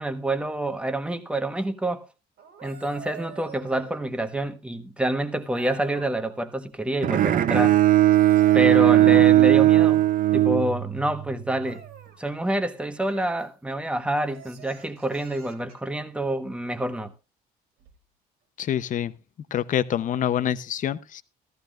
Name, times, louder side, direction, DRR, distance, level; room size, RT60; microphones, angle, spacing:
voice 1, 0.0-2.0 2.6-7.8 8.5-11.8 12.2-17.1, right 1 dB, 5° right, 1.3 m, -27 dB
sound 1, 2.4-4.4 5.5-6.5 7.9-9.5 11.6-12.2 13.0-13.5 14.1-15.9 17.8-18.0, right 7 dB, 70° right, 2.7 m, -46 dB
Bowed string instrument, 7.0-11.3, right 14 dB, 55° right, 0.7 m, -18 dB
voice 2, 18.6-19.1 19.5-21.2, left 10 dB, 50° left, 0.8 m, -26 dB
14.5 x 14.0 x 2.5 m
cardioid pair, 110°, 17 cm